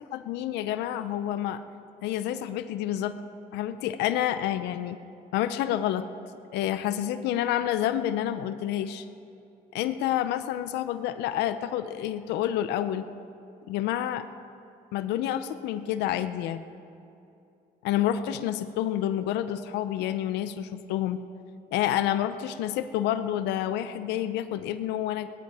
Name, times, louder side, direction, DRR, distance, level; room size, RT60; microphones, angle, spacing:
voice 1, 0.1-1.6 2.0-3.2 3.5-5.0 5.3-6.1 6.5-9.1 9.7-13.0 13.7-14.3 14.9-16.6 17.8-21.2 21.7-25.3, left 11 dB, 85° left, 11 dB, 0.6 m, -28 dB
17.5 x 13.0 x 4.8 m, 2.7 s
cardioid pair, 110°, 17 cm